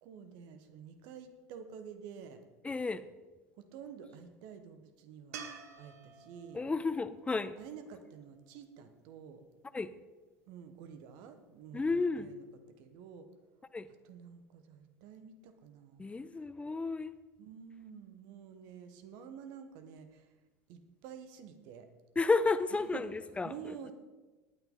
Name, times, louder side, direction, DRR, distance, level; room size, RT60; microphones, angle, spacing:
voice 1, 0.0-2.4 3.6-5.4 5.8-6.6 7.6-9.4 10.5-12.4 12.8-13.3 14.0-16.2 17.4-20.3 20.7-21.9 22.7-23.1 23.4-23.9, right 7 dB, 55° right, 8 dB, 1.5 m, -49 dB
voice 2, 2.6-3.0 6.5-7.6 9.7-9.9 11.7-12.3 13.7-13.9 16.0-17.2 22.2-23.5, left 3 dB, 15° left, 14 dB, 0.6 m, -32 dB
sound 1, 5.3-8.6 11.8-11.9, right 6 dB, 70° right, 1.2 m, -50 dB
19.0 x 9.2 x 3.9 m, 1.2 s
figure-of-eight pair, 75°, 9 cm